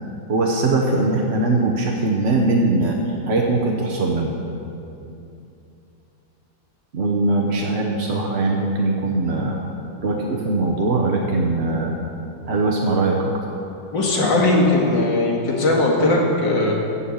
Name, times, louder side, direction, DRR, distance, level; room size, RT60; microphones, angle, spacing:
voice 1, 0.3-4.3 6.9-9.6 10.0-11.9 12.5-13.3, right 2 dB, 45° right, -1 dB, 1.0 m, -21 dB
voice 2, 13.9-16.7, left 2 dB, 90° left, -2 dB, 2.5 m, -18 dB
14.0 x 5.6 x 8.7 m, 2.8 s
omnidirectional pair, 1.9 m